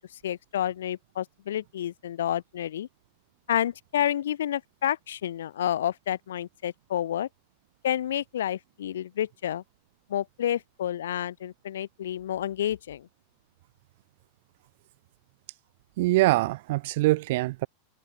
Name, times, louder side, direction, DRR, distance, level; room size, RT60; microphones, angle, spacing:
voice 1, 0.2-2.9 3.5-7.3 7.8-9.6 10.1-13.1, left 11 dB, 60° left, 0.6 m, -29 dB
voice 2, 16.0-17.7, right 19 dB, 50° right, 0.5 m, -23 dB
figure-of-eight pair, 90°, 0 cm